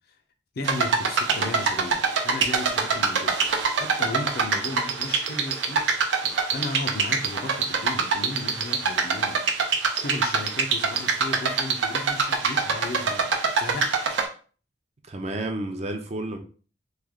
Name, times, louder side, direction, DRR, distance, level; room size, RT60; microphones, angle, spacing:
voice 1, 0.6-6.2 6.5-9.4 9.9-13.3 13.6-14.2, left 2 dB, 60° left, 0.5 m, -35 dB
sound 1, 0.6-14.3, right 5 dB, 85° right, 0.6 m, -24 dB
voice 2, 15.1-16.4, right 1 dB, 35° right, 0.5 m, -31 dB
3.2 x 2.3 x 3.5 m
head